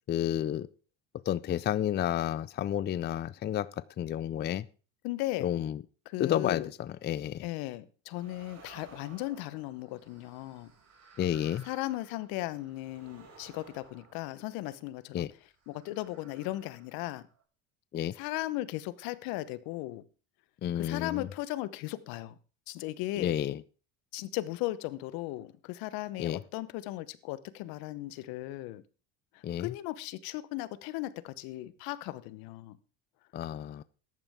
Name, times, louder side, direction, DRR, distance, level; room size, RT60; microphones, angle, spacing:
voice 1, 0.1-0.7 1.3-4.7 5.4-5.8 6.2-7.5 11.2-11.7 15.1-15.3 17.9-18.1 20.6-21.3 23.2-23.6 26.2-26.4 29.4-29.7 33.3-33.8, left 11 dB, 30° left, 0.4 m, -31 dB
voice 2, 5.0-5.5 6.1-6.7 7.4-10.7 11.6-15.3 15.7-17.2 18.1-20.0 20.7-22.4 22.7-23.4 24.1-28.8 29.3-32.8, left 17 dB, 70° left, 1.1 m, -37 dB
sound 1, 8.1-14.9 15.6-17.4, right 5 dB, 45° right, 4.8 m, -57 dB
14.0 x 11.0 x 3.6 m
hypercardioid pair, 80°, 38 cm